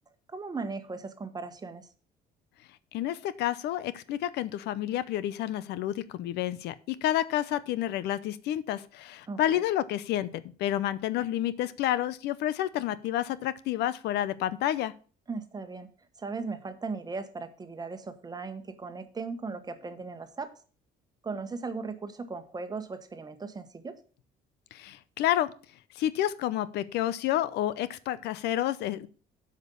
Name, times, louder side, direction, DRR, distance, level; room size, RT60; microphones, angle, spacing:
voice 1, 0.3-1.9 9.3-9.6 15.3-15.9 16.2-20.5 21.2-24.0, right 4 dB, 25° right, 10 dB, 1.2 m, -37 dB
voice 2, 2.9-14.9 24.7-25.5 25.9-29.1, left 12 dB, 80° left, 16 dB, 0.6 m, -30 dB
8.1 x 5.3 x 6.9 m, 0.39 s
cardioid pair, 110°, 17 cm